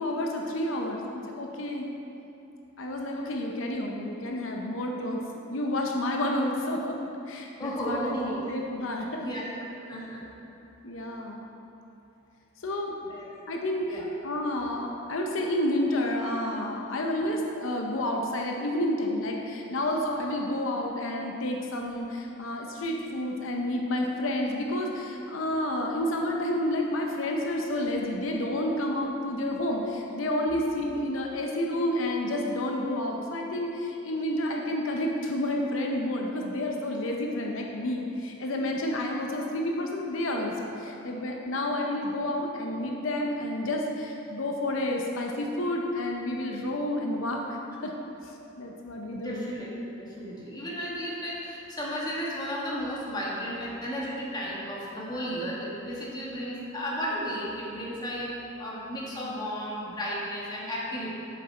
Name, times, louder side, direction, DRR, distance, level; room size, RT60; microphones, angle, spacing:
voice 1, 0.0-1.9 2.8-5.2 5.5-7.0 7.3-8.1 8.5-9.3 10.8-11.4 12.6-12.9 13.5-14.0 14.2-47.4 47.8-47.9 48.2-49.5, left 1 dB, 80° left, 1 dB, 0.7 m, -30 dB
voice 2, 7.6-8.4 9.2-9.5 9.9-10.2 13.0-13.3 13.9-14.1 49.1-61.2, equal, 20° left, -5 dB, 1.4 m, -34 dB
7.6 x 6.5 x 4.4 m, 2.8 s
head